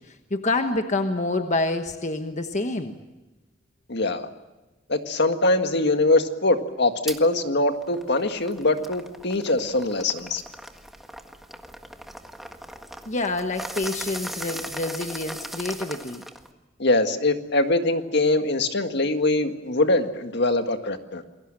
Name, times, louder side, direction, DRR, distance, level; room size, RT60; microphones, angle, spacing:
voice 1, 0.0-2.9 13.1-16.2, left 2 dB, 40° left, 6 dB, 1.3 m, -27 dB
voice 2, 3.9-4.3 4.9-10.4 16.8-21.2, left 2 dB, 60° left, 7 dB, 1.9 m, -23 dB
sound 1, 7.1-7.2 7.7-16.5, equal, ahead, 1.6 m, -38 dB
28.5 x 22.0 x 7.6 m, 1.1 s
head